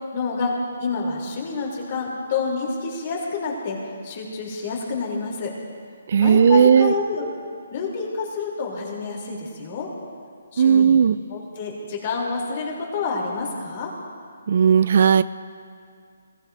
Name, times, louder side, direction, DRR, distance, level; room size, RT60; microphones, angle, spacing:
voice 1, 0.1-0.5 0.8-3.8 4.0-5.5 6.2-7.2 7.7-9.9 10.5-11.0 11.3-13.9, left 4 dB, 40° left, -2 dB, 3.3 m, -28 dB
voice 2, 6.1-6.9 10.6-11.2 14.5-15.2, right 7 dB, 55° right, 16 dB, 0.3 m, -15 dB
21.5 x 15.5 x 2.7 m, 2.2 s
hypercardioid pair, 160°, 0 cm